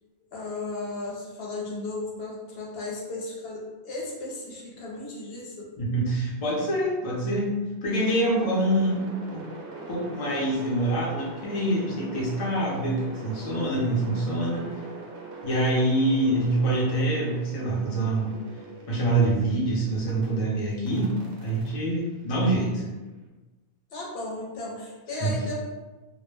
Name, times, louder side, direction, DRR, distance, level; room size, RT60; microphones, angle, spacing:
voice 1, 0.3-5.7 23.9-25.6, left 2 dB, 70° left, -3 dB, 0.8 m, -35 dB
voice 2, 5.8-9.1 9.3-9.4 9.9-14.6 15.4-18.3 18.9-22.9 25.2-25.3, right 1 dB, 40° left, -5 dB, 0.6 m, -25 dB
sound 1, 7.9-20.3 20.9-23.0, right 3 dB, 65° right, 0.8 m, -42 dB
2.2 x 2.1 x 3.2 m, 1.2 s
omnidirectional pair, 1.1 m